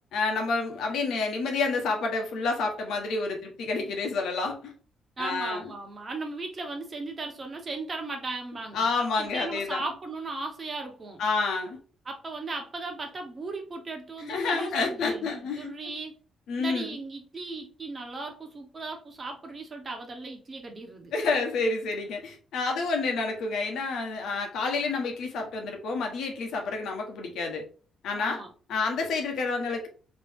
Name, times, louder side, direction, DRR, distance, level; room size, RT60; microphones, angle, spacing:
voice 1, 0.1-4.7 5.2-5.6 8.7-9.8 11.2-11.8 14.3-15.7 16.5-16.9 21.1-27.6 28.0-28.4 28.7-29.9, left 4 dB, 75° left, 1.2 m, -29 dB
voice 2, 5.2-11.2 12.0-15.3 15.6-16.2 16.6-21.1 28.2-28.5, right 3 dB, 35° right, 1.3 m, -37 dB
3.7 x 3.2 x 3.5 m
cardioid pair, 90°, 0 cm